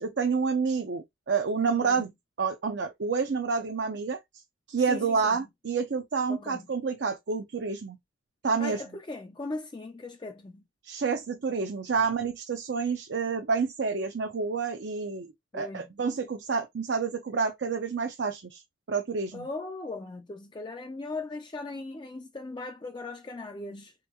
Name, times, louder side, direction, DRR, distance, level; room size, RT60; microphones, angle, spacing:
voice 1, 0.0-2.1 2.4-4.2 4.7-8.0 8.4-8.8 10.8-18.6 18.9-19.5, right 5 dB, 60° right, 0.5 m, -29 dB
voice 2, 1.6-2.1 4.9-5.4 6.3-6.7 8.6-10.6 15.5-15.8 19.3-23.9, left 3 dB, 25° left, 0.3 m, -38 dB
3.4 x 2.9 x 2.2 m
head